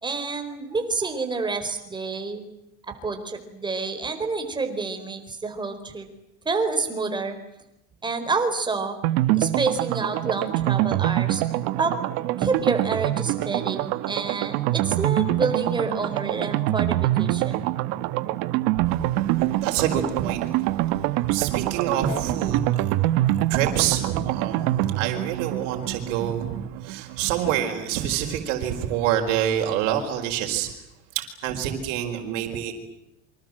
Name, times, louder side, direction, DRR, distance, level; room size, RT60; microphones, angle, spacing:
voice 1, 0.0-2.4 2.9-6.1 6.4-7.4 8.0-9.0 9.3-11.4 11.8-12.0 12.4-17.7, right 4 dB, 10° right, 6 dB, 4.4 m, -28 dB
sound 1, 9.0-27.6 27.9-28.0 28.3-28.4, right 15 dB, 65° right, 1.6 m, -25 dB
voice 2, 18.9-20.7 21.2-22.9 23.5-30.7 31.1-32.7, right 10 dB, 90° right, 3 dB, 4.8 m, -27 dB
28.0 x 25.0 x 7.7 m, 0.86 s
cardioid pair, 160°, 36 cm